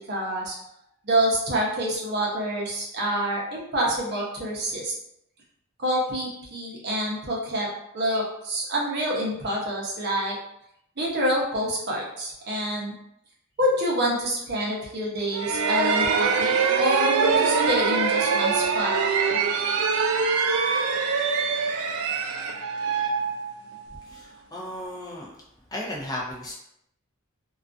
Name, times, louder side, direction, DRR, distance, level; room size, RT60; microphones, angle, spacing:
voice 1, 0.1-0.5 1.0-4.9 5.8-7.7 7.9-10.4 11.0-12.9 13.6-18.9, equal, 50° right, -3 dB, 0.7 m, -27 dB
sound 1, 15.3-24.0, right 5 dB, 80° right, 0.3 m, -24 dB
voice 2, 24.1-25.3 25.7-26.5, left 1 dB, 20° left, -4 dB, 0.4 m, -35 dB
2.3 x 2.3 x 2.4 m, 0.76 s
head